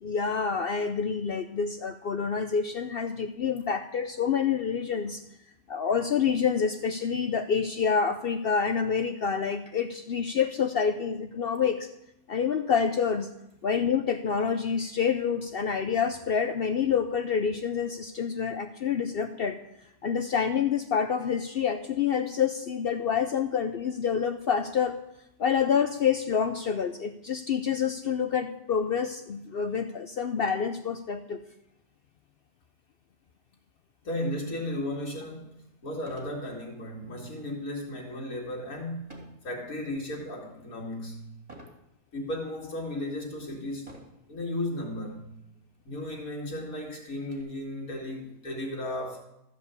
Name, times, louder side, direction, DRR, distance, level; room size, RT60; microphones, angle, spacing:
voice 1, 0.0-5.2 5.7-11.9 12.3-13.3 13.6-19.6 20.0-25.0 25.4-31.4, left 6 dB, 60° left, 8 dB, 0.6 m, -27 dB
voice 2, 34.0-41.3 42.1-43.9 44.3-45.3 45.8-49.2, left 1 dB, 80° left, -3 dB, 2.6 m, -35 dB
sound 1, 35.0-35.1 36.0-36.4 36.9-37.2 39.1-39.5 40.1-40.5 41.5-41.8 42.6-42.7 43.8-44.3 45.3-45.4 45.7-45.8 46.3-47.4, right 1 dB, 25° right, 2.6 m, -49 dB
13.5 x 5.0 x 8.2 m, 0.82 s
omnidirectional pair, 1.5 m